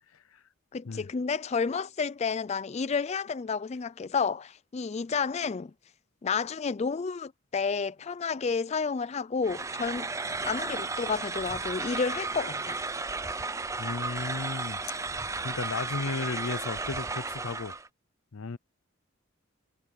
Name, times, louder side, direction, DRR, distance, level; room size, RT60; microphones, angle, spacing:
voice 1, 0.7-5.7 6.2-10.1 10.4-12.8, left 5 dB, 30° left, 0.4 m, -31 dB
sound 1, 9.4-17.9, right 3 dB, 15° right, 0.6 m, -34 dB
voice 2, 13.8-17.7 18.3-18.6, left 4 dB, 80° left, 0.6 m, -35 dB
head